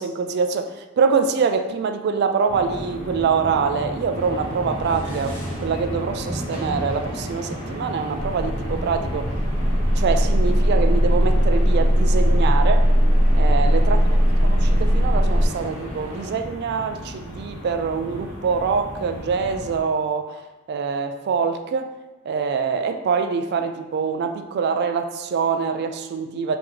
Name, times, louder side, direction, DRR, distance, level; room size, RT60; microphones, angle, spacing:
voice 1, 0.0-9.3 10.0-12.9 13.3-20.4 20.7-21.9 22.3-26.6, right 5 dB, 55° right, 7 dB, 0.3 m, -24 dB
sound 1, 2.5-19.8, equal, 60° left, 0.9 m, -34 dB
sound 2, 4.1-16.3, equal, 25° right, 1.5 m, -38 dB
sound 3, 8.2-15.5, equal, 10° left, 1.4 m, -18 dB
3.9 x 2.8 x 3.1 m, 1.1 s
head